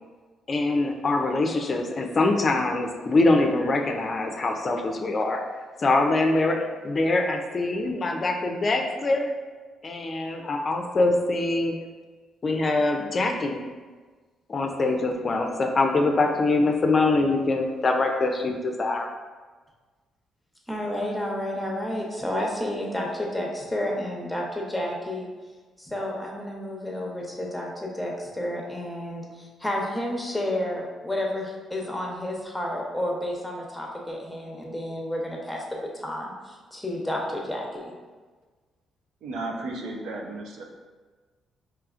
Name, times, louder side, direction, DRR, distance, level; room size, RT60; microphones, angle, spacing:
voice 1, 0.5-5.4 5.8-9.3 9.8-11.7 12.4-13.7 14.5-19.1, left 2 dB, 40° left, 3 dB, 0.4 m, -24 dB
voice 2, 20.7-25.3 25.8-37.9, left 1 dB, 5° left, -1 dB, 0.8 m, -31 dB
voice 3, 39.2-40.6, right 2 dB, 80° right, 0 dB, 0.5 m, -34 dB
4.7 x 3.0 x 2.4 m, 1.4 s
cardioid pair, 90°, 0 cm